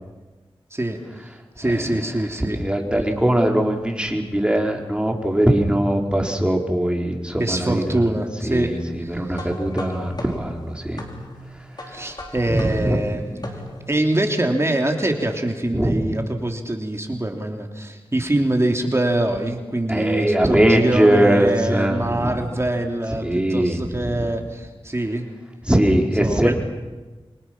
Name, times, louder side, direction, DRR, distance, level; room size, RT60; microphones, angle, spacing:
voice 1, 1.6-2.6 7.4-8.7 9.0-9.5 11.9-25.2 26.2-26.5, right 1 dB, 25° right, 3 dB, 3.2 m, -24 dB
voice 2, 2.5-7.9 8.4-11.0 12.5-13.0 15.7-16.0 19.9-22.3 23.2-23.8 24.2-24.3 25.7-26.5, right 1 dB, 10° right, 1 dB, 4.4 m, -20 dB
sound 1, 9.3-14.0, left 1 dB, 45° left, 4.7 m, -37 dB
28.5 x 25.0 x 6.1 m, 1.2 s
wide cardioid pair, 55°, 10 cm